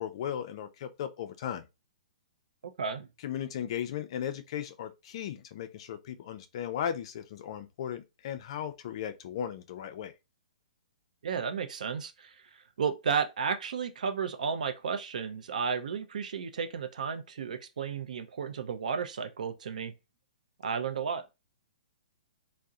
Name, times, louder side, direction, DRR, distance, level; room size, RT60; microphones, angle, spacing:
voice 1, 0.0-1.6 3.2-10.1, left 9 dB, 45° left, 0.3 m, -36 dB
voice 2, 11.2-12.5 12.8-19.9 20.6-21.2, right 6 dB, 75° right, 0.5 m, -33 dB
2.6 x 2.0 x 2.3 m
hypercardioid pair, 160°, 4 cm